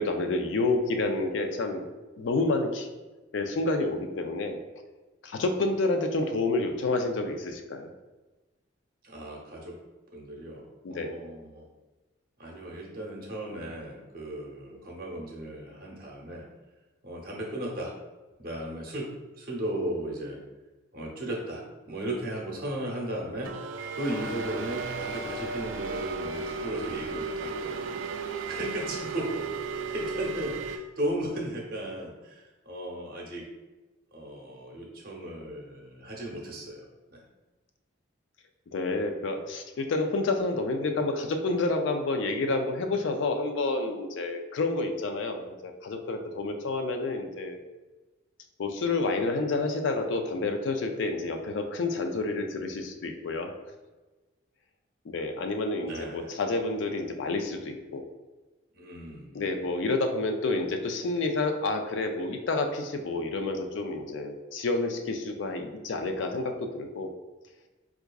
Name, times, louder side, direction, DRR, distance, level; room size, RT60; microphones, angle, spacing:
voice 1, 0.0-1.9 2.2-2.9 3.3-4.6 5.2-7.9 10.8-11.1 38.7-47.6 48.6-53.5 55.1-58.0 59.3-67.1, left 2 dB, 70° left, 5 dB, 0.4 m, -29 dB
voice 2, 9.0-9.8 10.1-11.7 12.4-16.5 17.0-17.9 18.4-20.4 20.9-23.5 23.9-33.5 34.1-36.9 37.1-37.2 55.8-56.4 58.7-59.6, right 1 dB, 50° right, -2 dB, 0.7 m, -36 dB
sound 1, 23.4-30.8, right 4 dB, 75° right, 0.3 m, -34 dB
4.6 x 2.4 x 2.3 m, 1.2 s
head